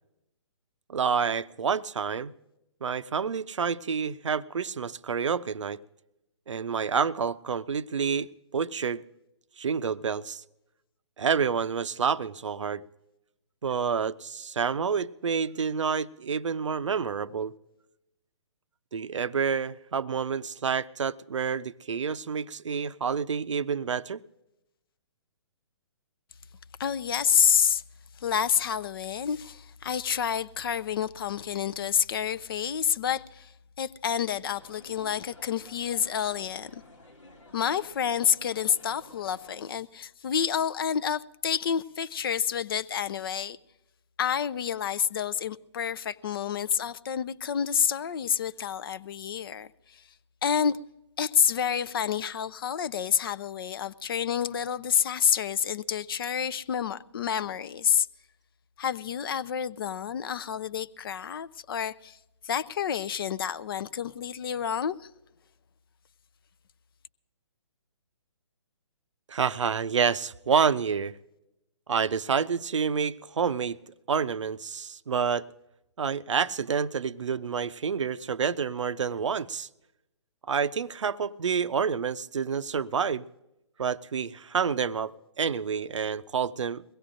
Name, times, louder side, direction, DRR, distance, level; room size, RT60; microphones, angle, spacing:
voice 1, 0.9-2.3 2.8-5.8 6.5-9.0 9.6-10.4 11.2-12.8 13.6-17.5 18.9-24.2 69.3-71.1 71.9-73.8 74.1-75.5 76.0-79.7 80.5-83.3 83.8-86.8, right 6 dB, 75° right, 0.5 m, -28 dB
voice 2, 26.8-27.8 28.2-33.5 33.8-36.8 37.5-43.6 44.2-50.0 50.4-50.8 51.2-58.1 58.8-62.2 62.4-65.0, left 8 dB, 50° left, 0.5 m, -28 dB
sound 1, 34.6-39.7, left 1 dB, 85° left, 1.7 m, -52 dB
22.0 x 17.0 x 2.5 m
figure-of-eight pair, 135°, 16 cm